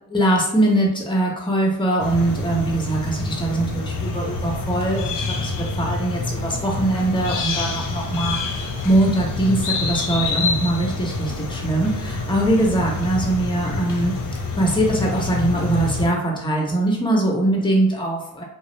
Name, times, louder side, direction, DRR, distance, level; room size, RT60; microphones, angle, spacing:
voice 1, 0.1-14.1 14.6-18.4, right 1 dB, 10° left, -1 dB, 0.9 m, -22 dB
sound 1, 2.0-16.1, left 3 dB, 55° left, 0.7 m, -27 dB
2.3 x 2.0 x 3.0 m, 0.79 s
supercardioid pair, 45°, 38 cm